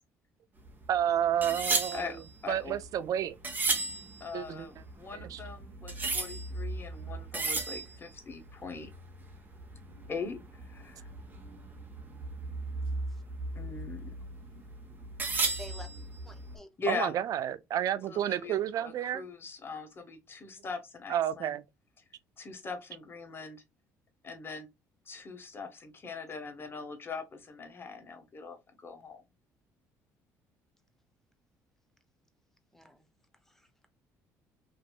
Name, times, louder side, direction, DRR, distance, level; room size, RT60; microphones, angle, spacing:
sound 1, 0.6-16.6, right 3 dB, 25° right, 1.1 m, -36 dB
voice 1, 0.9-2.0 2.5-3.4 4.3-4.7 5.3-5.4 16.9-19.3 21.1-21.6, right 10 dB, 60° right, 0.4 m, -30 dB
voice 2, 1.9-2.8 4.2-8.9 10.1-11.1 13.5-14.1 16.8-17.1 18.1-21.6 22.4-23.6 24.2-24.7 25.1-29.2, left 4 dB, 35° left, 1.0 m, -41 dB
voice 3, 15.6-15.9 16.2-16.7 32.7-33.1 33.5-33.9, left 1 dB, 5° left, 0.7 m, -50 dB
3.1 x 2.6 x 2.4 m
supercardioid pair, 80°, 7 cm